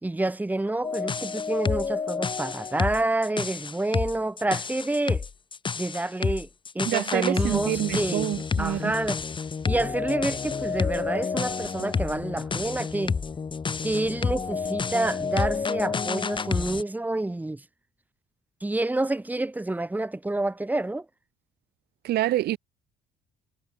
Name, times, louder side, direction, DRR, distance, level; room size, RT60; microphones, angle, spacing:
voice 1, 0.0-5.3 5.8-6.5 6.8-8.3 8.6-9.2 9.7-13.2 13.8-17.6 18.6-21.1, right 2 dB, 10° right, 3.6 m, -28 dB
sound 1, 0.8-16.8, left 5 dB, 30° left, 2.8 m, -29 dB
voice 2, 6.9-8.9 22.0-22.6, right 14 dB, 70° right, 4.2 m, -27 dB
cardioid pair, 110°, 17 cm